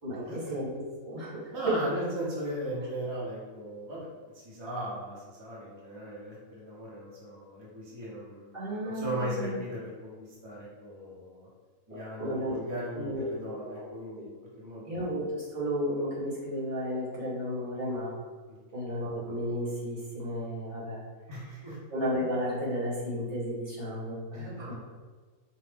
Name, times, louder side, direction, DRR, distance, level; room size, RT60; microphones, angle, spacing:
voice 1, 0.0-1.8 8.5-9.6 11.9-12.6 12.9-13.8 14.1-14.2 14.8-18.1 18.7-21.0 21.9-24.7, equal, 65° right, -7 dB, 1.8 m, -33 dB
voice 2, 1.5-4.1 4.3-8.5 8.8-10.1 10.4-11.5 11.9-15.0 18.5-18.6 21.3-21.8 24.3-24.7, equal, 20° right, -6 dB, 0.9 m, -38 dB
4.7 x 2.4 x 3.5 m, 1.5 s
omnidirectional pair, 1.5 m